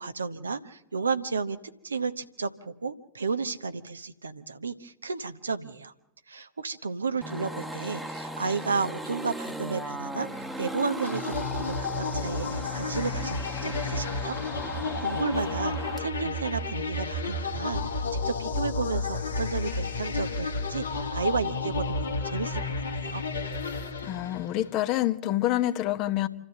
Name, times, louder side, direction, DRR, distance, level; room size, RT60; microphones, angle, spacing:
voice 1, 0.0-1.6 1.8-5.9 6.3-14.4 14.6-23.2, right 4 dB, 75° right, 1.0 m, -33 dB
sound 1, 7.2-16.1, right 1 dB, 5° right, 1.3 m, -38 dB
sound 2, 11.0-24.7, left 3 dB, 75° left, 1.6 m, -31 dB
voice 2, 23.6-26.3, left 14 dB, 40° left, 1.0 m, -28 dB
27.0 x 13.5 x 7.1 m
figure-of-eight pair, 90°, 0 cm